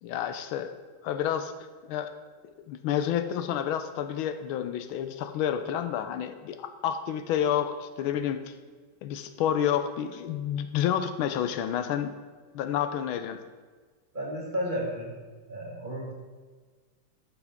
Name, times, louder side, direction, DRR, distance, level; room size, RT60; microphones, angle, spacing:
voice 1, 0.0-0.7 1.0-1.5 1.9-2.1 2.7-8.4 9.0-12.1 12.5-13.4, left 9 dB, 85° left, 9 dB, 1.5 m, -29 dB
voice 2, 14.1-15.1 15.5-16.1, equal, 25° right, -4 dB, 1.7 m, -32 dB
13.0 x 6.1 x 3.6 m, 1.4 s
omnidirectional pair, 2.2 m